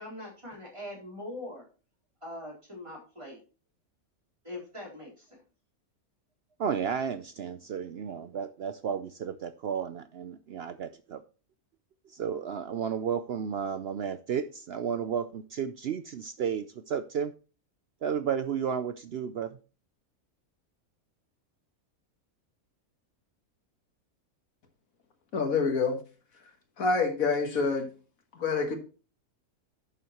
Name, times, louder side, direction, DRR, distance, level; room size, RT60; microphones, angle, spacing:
voice 1, 0.0-1.7 2.2-3.4 4.4-5.4, left 1 dB, 20° right, 3.8 m, -42 dB
voice 2, 6.6-11.2 12.1-17.3 18.0-19.6, right 7 dB, 65° right, 0.6 m, -33 dB
voice 3, 25.3-26.0 26.8-27.9 28.4-28.8, left 4 dB, 70° left, 1.8 m, -27 dB
11.0 x 7.4 x 2.9 m
omnidirectional pair, 1.5 m